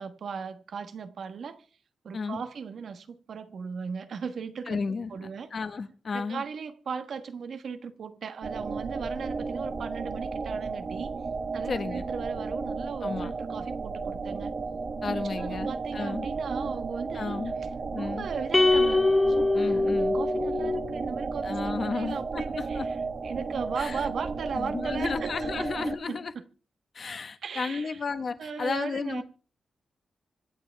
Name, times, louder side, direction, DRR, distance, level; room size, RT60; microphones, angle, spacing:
voice 1, 0.0-1.6 2.0-4.8 5.1-5.5 6.1-11.1 11.5-14.5 15.1-17.4 18.0-23.0 23.2-25.3 25.6-26.2 27.4-28.0 28.4-29.2, right 6 dB, 65° right, 1.3 m, -37 dB
voice 2, 4.7-6.4 11.7-12.0 13.0-13.4 15.0-16.3 17.1-17.5 17.9-18.3 19.5-20.2 21.4-22.9 23.8-24.1 24.5-26.3 26.9-29.2, left 4 dB, 45° left, 1.4 m, -33 dB
sound 1, 8.4-26.0, right 4 dB, 40° right, 1.1 m, -33 dB
sound 2, 18.5-21.0, left 2 dB, 20° left, 0.6 m, -23 dB
25.0 x 9.5 x 3.5 m
wide cardioid pair, 155°, 0 cm